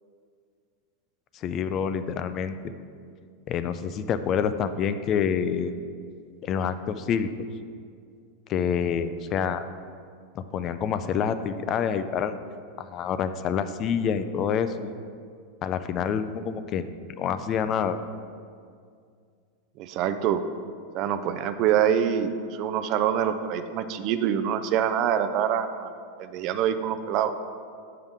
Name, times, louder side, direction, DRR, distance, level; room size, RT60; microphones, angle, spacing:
voice 1, 1.3-2.6 3.5-5.7 6.4-7.3 8.5-9.6 10.4-12.3 12.8-14.9 15.6-16.9 17.2-18.0, left 7 dB, 35° left, 11 dB, 0.3 m, -27 dB
voice 2, 19.8-20.4 20.9-25.9 26.2-27.3, right 9 dB, 50° right, 10 dB, 0.4 m, -25 dB
7.8 x 5.6 x 3.6 m, 2.2 s
supercardioid pair, 125°, 0 cm